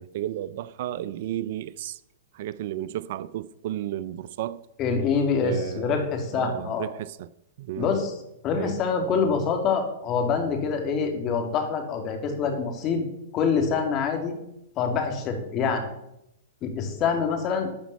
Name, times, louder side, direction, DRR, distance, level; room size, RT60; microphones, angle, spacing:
voice 1, 0.0-2.0 2.3-4.6 5.4-5.9 6.3-7.3 7.6-7.9 8.6-8.7, right 12 dB, 55° right, 0.4 m, -33 dB
voice 2, 4.8-6.9 7.8-8.2 8.4-13.0 13.3-14.3 14.8-15.9 16.6-17.7, left 5 dB, 35° left, 2.7 m, -25 dB
12.5 x 5.2 x 8.3 m
hypercardioid pair, 125°, 0 cm